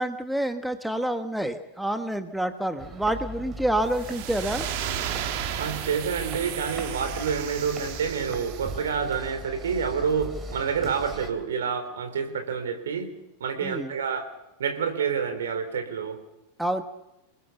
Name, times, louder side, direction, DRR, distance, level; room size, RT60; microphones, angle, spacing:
voice 1, 0.0-4.7 13.6-13.9 16.6-16.8, right 1 dB, ahead, 8 dB, 1.3 m, -28 dB
sound 1, 2.8-11.3, right 2 dB, 20° right, 3.1 m, -39 dB
sound 2, 3.9-8.8, right 10 dB, 45° right, 2.0 m, -34 dB
voice 2, 5.6-13.1 13.4-14.3 14.6-16.2, right 6 dB, 65° right, 7 dB, 3.8 m, -28 dB
28.5 x 19.5 x 7.1 m, 0.92 s
figure-of-eight pair, 90°, 0 cm